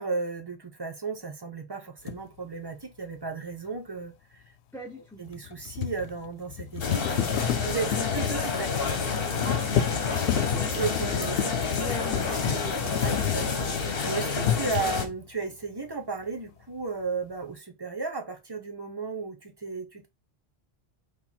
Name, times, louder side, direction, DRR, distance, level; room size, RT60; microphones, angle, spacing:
voice 1, 0.0-4.4 5.2-8.7 10.8-11.4 13.0-20.1, right 4 dB, 25° right, 0.7 m, -34 dB
sound 1, 2.1-2.2 5.3-14.0 14.4-15.2, left 10 dB, 80° left, 0.8 m, -30 dB
voice 2, 4.7-5.2 7.9-8.1 10.2-10.8 11.8-13.0, left 1 dB, ahead, 0.9 m, -40 dB
sound 2, 6.8-15.1, left 4 dB, 60° left, 1.1 m, -29 dB
4.5 x 2.3 x 4.1 m
omnidirectional pair, 1.1 m